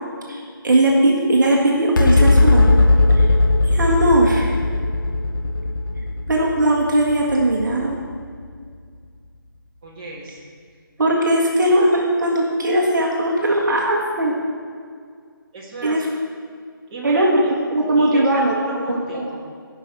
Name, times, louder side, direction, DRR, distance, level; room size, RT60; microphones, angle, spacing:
voice 1, 0.3-2.8 3.1-3.3 3.6-4.5 6.3-8.0 11.0-14.4 15.8-16.1 17.0-17.4 17.7-18.5 18.9-19.4, right 1 dB, 55° right, -1 dB, 1.4 m, -19 dB
sound 1, 1.9-8.6, left 2 dB, 60° left, 1.1 m, -18 dB
voice 2, 9.8-10.5 15.5-16.0 16.9-17.5 18.0-19.4, right 2 dB, 20° right, -6 dB, 1.8 m, -34 dB
15.0 x 5.5 x 4.6 m, 2.1 s
figure-of-eight pair, 160°, 12 cm